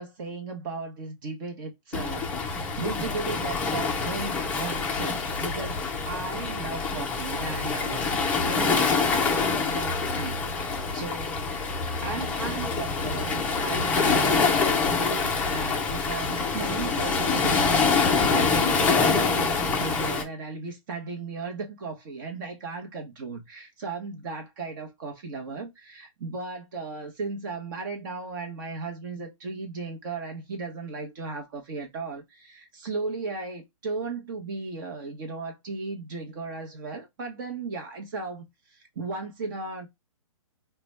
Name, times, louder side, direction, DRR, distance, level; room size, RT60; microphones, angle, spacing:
voice 1, 0.0-11.5 11.9-39.9, right 4 dB, 35° right, 0.9 m, -36 dB
Waves surf, 1.9-20.2, left 4 dB, 10° left, 0.5 m, -26 dB
3.9 x 2.2 x 3.2 m
hypercardioid pair, 155°, 18 cm